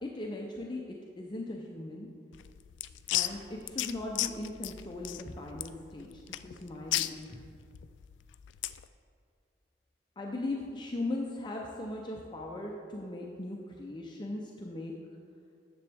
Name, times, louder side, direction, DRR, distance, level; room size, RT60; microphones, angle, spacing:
voice 1, 0.0-2.1 3.1-7.4 10.2-14.9, left 2 dB, 25° left, -1 dB, 0.5 m, -39 dB
sound 1, 2.3-8.9, left 14 dB, 85° left, 0.3 m, -35 dB
9.7 x 6.9 x 3.5 m, 2.3 s
head